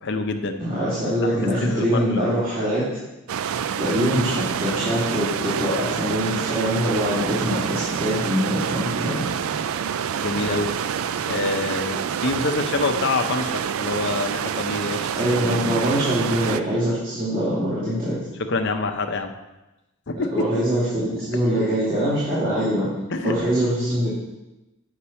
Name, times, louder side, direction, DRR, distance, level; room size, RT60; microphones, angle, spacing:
voice 1, 0.0-0.6 1.2-2.4 10.2-10.7 11.3-15.4 18.4-19.3 20.1-20.5 23.1-23.3, left 3 dB, 55° left, 5 dB, 0.6 m, -26 dB
voice 2, 0.6-2.9 3.8-9.2 15.2-18.2 20.3-22.9 23.2-24.1, equal, 40° right, -12 dB, 2.5 m, -23 dB
sound 1, 3.3-16.6, right 8 dB, 70° right, 0.3 m, -27 dB
8.5 x 5.9 x 4.3 m, 1.0 s
head